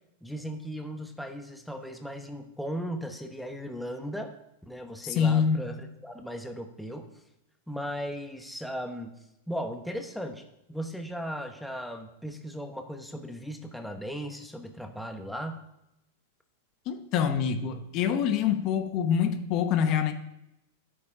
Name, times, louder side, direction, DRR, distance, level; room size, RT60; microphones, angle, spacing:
voice 1, 0.2-4.3 4.6-7.1 7.7-9.1 9.5-15.6, equal, ahead, 4 dB, 1.0 m, -37 dB
voice 2, 5.0-5.7 16.9-20.1, left 7 dB, 40° left, 8 dB, 1.0 m, -25 dB
9.9 x 8.6 x 4.9 m, 0.85 s
supercardioid pair, 135°, 0 cm